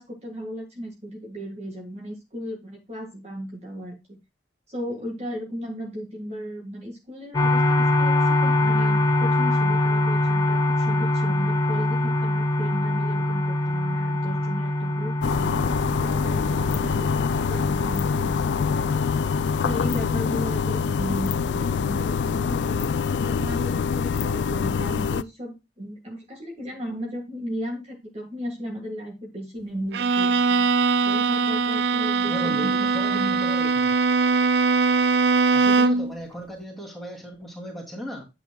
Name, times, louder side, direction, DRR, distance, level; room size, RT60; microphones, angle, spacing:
voice 1, 0.0-4.0 4.7-19.1 19.6-22.9 23.2-30.6 31.0-33.4, equal, 35° right, 1 dB, 1.8 m, -35 dB
sound 1, 7.3-25.1, left 1 dB, 25° left, 0.9 m, -25 dB
sound 2, 15.2-25.2, left 6 dB, 80° left, 0.3 m, -25 dB
Bowed string instrument, 29.9-36.1, right 4 dB, 75° right, 0.4 m, -21 dB
voice 2, 32.3-33.9 35.5-38.2, equal, ahead, -3 dB, 2.7 m, -36 dB
9.2 x 8.2 x 2.3 m, 0.24 s
head